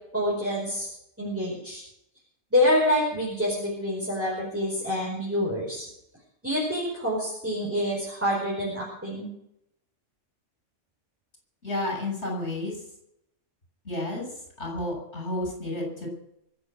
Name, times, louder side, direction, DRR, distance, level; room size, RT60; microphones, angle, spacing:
voice 1, 0.1-0.9 1.2-1.8 2.5-5.8 6.4-9.3, left 1 dB, 10° right, -5 dB, 5.0 m, -27 dB
voice 2, 11.6-12.8 13.8-14.3 14.6-16.1, left 1 dB, 60° left, -1 dB, 7.4 m, -31 dB
24.0 x 8.1 x 6.4 m, 0.78 s
omnidirectional pair, 1.3 m